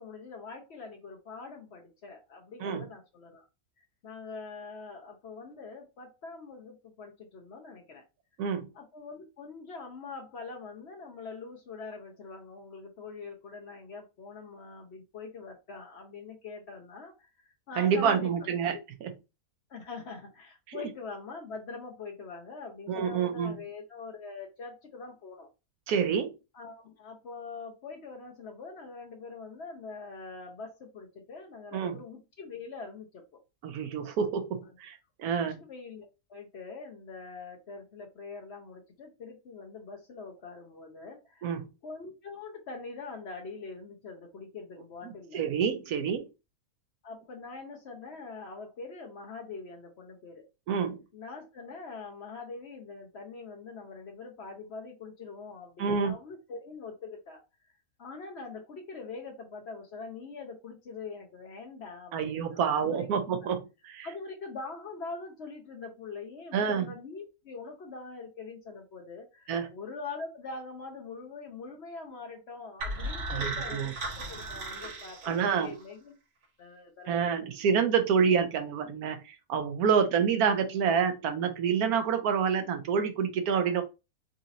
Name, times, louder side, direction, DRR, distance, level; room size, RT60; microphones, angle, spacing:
voice 1, 0.0-3.4 3.8-8.0 8.7-18.8 19.7-25.5 26.5-33.4 35.7-45.4 47.0-50.4 51.1-57.4 58.0-63.1 64.0-76.2 76.6-77.5, left 4 dB, 55° left, 0.8 m, -43 dB
voice 2, 17.8-19.1 20.7-20.9 22.9-23.6 25.9-26.3 31.7-32.0 33.6-35.6 41.4-41.7 45.3-46.2 50.7-51.0 55.8-56.1 62.1-63.6 63.9-64.1 66.5-66.9 69.5-69.7 73.3-73.9 75.3-75.7 77.1-83.8, right 6 dB, 80° right, 1.1 m, -28 dB
sound 1, 72.8-75.8, right 2 dB, 55° right, 1.2 m, -36 dB
3.9 x 2.7 x 2.5 m
omnidirectional pair, 1.6 m